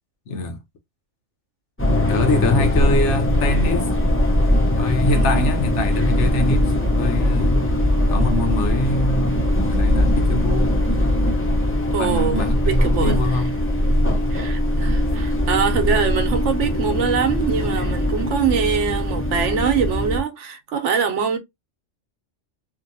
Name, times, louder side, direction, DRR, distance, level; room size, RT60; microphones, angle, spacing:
voice 1, 0.3-0.6 2.1-3.9 4.7-7.7 8.1-10.7 12.0-13.5 14.0-14.3, left 2 dB, 85° left, 1.1 m, -24 dB
sound 1, 1.8-20.2, left 1 dB, 15° left, 0.5 m, -20 dB
voice 2, 5.1-5.7 11.9-13.4 14.3-21.4, right 7 dB, 85° right, 1.1 m, -24 dB
2.9 x 2.6 x 2.6 m
omnidirectional pair, 1.2 m